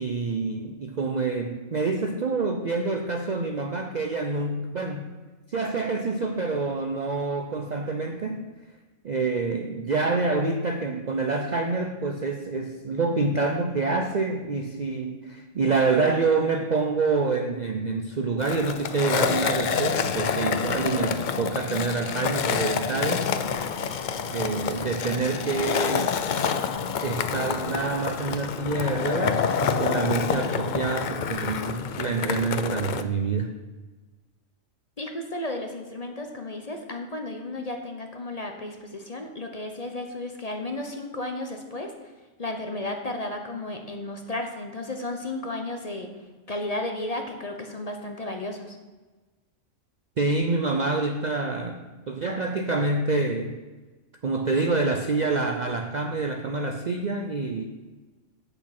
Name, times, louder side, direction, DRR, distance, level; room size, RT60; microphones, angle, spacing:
voice 1, 0.0-5.1 5.5-8.5 9.0-23.3 24.3-26.1 27.0-33.5 50.2-53.6 54.2-57.7, right 3 dB, 50° right, 5 dB, 0.5 m, -27 dB
Skateboard, 18.4-33.0, left 6 dB, 60° left, 0.5 m, -28 dB
voice 2, 35.0-41.9 42.4-46.1 46.5-48.8, left 2 dB, 35° left, 4 dB, 0.8 m, -33 dB
8.4 x 6.9 x 5.9 m, 1.3 s
omnidirectional pair, 1.4 m